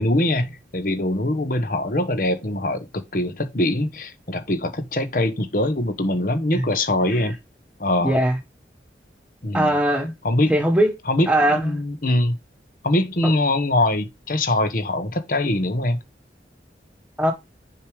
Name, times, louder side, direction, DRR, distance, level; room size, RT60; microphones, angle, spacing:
voice 1, 0.0-7.3 7.8-8.2 9.4-9.7 10.2-10.5 11.1-12.4 12.8-16.0, left 1 dB, 50° left, 1.1 m, -23 dB
voice 2, 8.0-8.4 9.5-10.1 10.5-10.9 11.3-11.8 17.2-17.3, right 1 dB, 5° right, 1.4 m, -20 dB
6.6 x 4.9 x 3.4 m
head